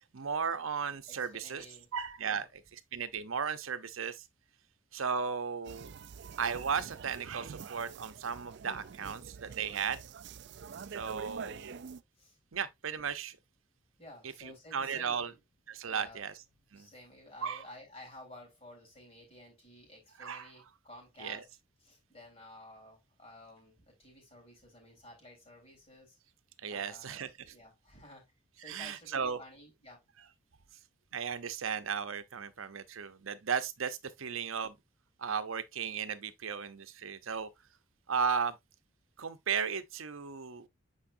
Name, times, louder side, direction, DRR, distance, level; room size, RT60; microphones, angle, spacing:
voice 1, 0.1-1.6 1.9-2.5 2.9-4.2 4.9-5.9 6.4-10.0 10.9-11.8 12.5-13.4 14.4-15.3 15.7-16.3 16.7-16.9 17.4-17.6 20.2-20.5 21.2-21.4 26.6-27.3 28.6-29.4 31.1-34.7 35.2-37.5 38.1-38.5 39.2-40.7, right 6 dB, 80° right, 0.7 m, -35 dB
voice 2, 1.1-1.9 2.2-2.5 11.2-11.7 12.2-12.4 14.0-15.4 15.8-16.2 16.5-21.5 21.8-26.2 26.7-28.2 28.6-30.0, left 1 dB, 30° left, 3.6 m, -53 dB
sound 1, 5.6-12.0, right 6 dB, 55° right, 0.4 m, -46 dB
8.8 x 4.5 x 2.6 m
head